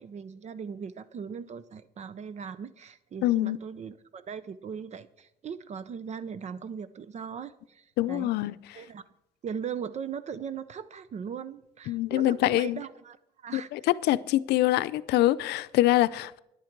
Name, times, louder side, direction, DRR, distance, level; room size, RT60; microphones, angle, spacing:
voice 1, 0.0-8.3 8.7-9.0 9.4-13.9, right 7 dB, 40° right, 0.6 m, -39 dB
voice 2, 3.2-3.6 8.0-8.5 11.9-12.8 13.5-13.8 14.1-16.4, left 15 dB, 80° left, 0.6 m, -24 dB
14.5 x 11.0 x 4.6 m
cardioid pair, 110°, 17 cm